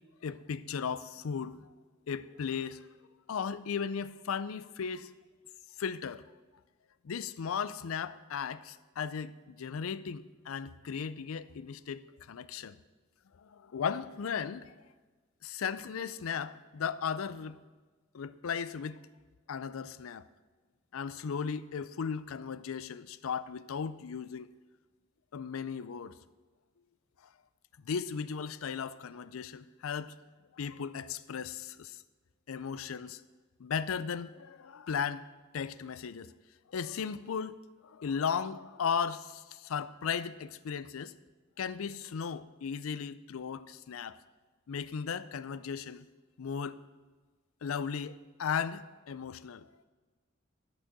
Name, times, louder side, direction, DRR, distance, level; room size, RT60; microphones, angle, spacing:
voice 1, 0.2-1.7 2.1-2.9 3.3-5.1 5.8-6.2 7.0-12.7 13.3-14.7 15.4-17.6 18.1-19.0 19.5-20.3 20.9-24.5 25.3-26.1 27.8-30.1 30.6-32.0 32.5-33.2 33.6-35.2 35.5-36.3 36.7-37.6 37.8-41.1 41.6-44.2 44.7-46.0 46.4-46.8 47.6-49.7, left 6 dB, 90° left, 0.4 m, -36 dB
11.5 x 6.5 x 6.0 m
head